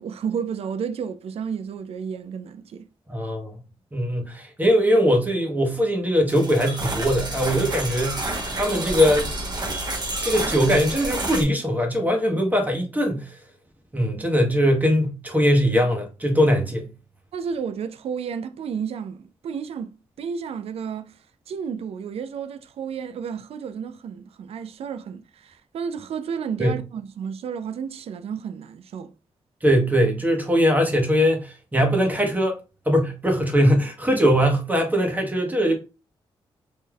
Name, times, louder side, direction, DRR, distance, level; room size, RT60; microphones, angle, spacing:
voice 1, 0.0-2.9 17.3-21.2 21.5-29.1, right 7 dB, 70° right, 0.4 m, -32 dB
voice 2, 3.1-3.5 3.9-8.2 8.6-9.3 10.2-13.4 13.9-16.9 26.6-26.8 29.6-32.6 32.9-35.8, equal, 15° right, 1.1 m, -21 dB
sound 1, 6.3-11.4, right 2 dB, 40° right, 1.1 m, -29 dB
3.5 x 2.6 x 2.3 m
cardioid pair, 60°, 11 cm